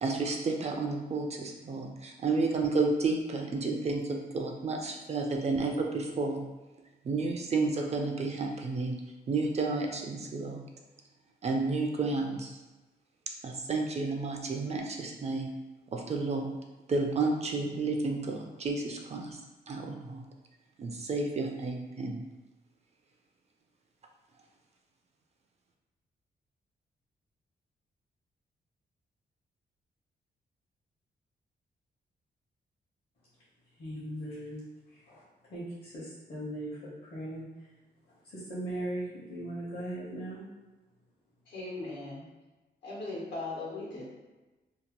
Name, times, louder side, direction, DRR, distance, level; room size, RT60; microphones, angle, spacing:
voice 1, 0.0-6.4 7.0-8.9 9.3-10.6 11.4-12.6 13.4-15.5 15.9-16.5 16.9-19.4 19.7-20.2 20.8-22.2, right 3 dB, 40° right, 2 dB, 0.4 m, -31 dB
voice 2, 33.8-34.6 34.9-35.2 35.5-37.5 38.3-40.4, right 1 dB, 65° left, -9 dB, 1.0 m, -38 dB
voice 3, 41.5-42.2 42.8-44.1, left 2 dB, 90° left, -6 dB, 1.2 m, -38 dB
2.8 x 2.1 x 2.9 m, 1.1 s
cardioid pair, 120°, 18 cm